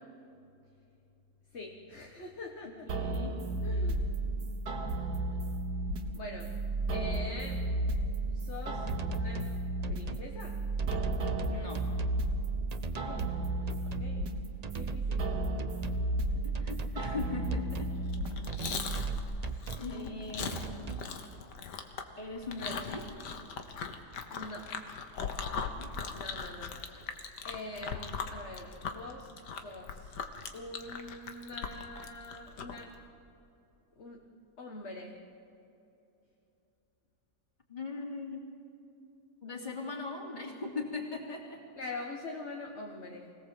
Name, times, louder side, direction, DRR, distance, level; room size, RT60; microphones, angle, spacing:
voice 1, 1.5-3.1 3.6-4.1 6.1-6.6 6.9-7.7 8.3-9.5 9.9-10.6 13.0-13.4 13.8-14.4 14.7-15.5 24.3-24.8 26.1-26.8 27.4-30.2 30.5-33.0 34.0-34.2 34.6-35.2 41.7-43.3, left 2 dB, 45° left, 0 dB, 1.7 m, -44 dB
voice 2, 2.6-3.4 11.5-11.8 16.4-17.9 19.7-21.0 22.2-23.1 25.8-25.9 37.7-38.5 39.4-41.6, left 3 dB, 25° left, 0 dB, 3.3 m, -40 dB
sound 1, 2.9-19.2, right 2 dB, 75° right, 1.9 m, -33 dB
sound 2, 8.9-9.5 9.8-10.3 10.8-12.2 12.7-13.4 13.7-14.1 14.6-15.3 15.6-16.1 16.5-17.2 17.5-18.0 18.5-19.9 20.4-21.1, right 5 dB, 45° right, 0.5 m, -40 dB
Chewing mastication, 18.0-32.8, left 6 dB, 90° left, 1.9 m, -40 dB
25.0 x 18.0 x 7.8 m, 2.8 s
omnidirectional pair, 1.8 m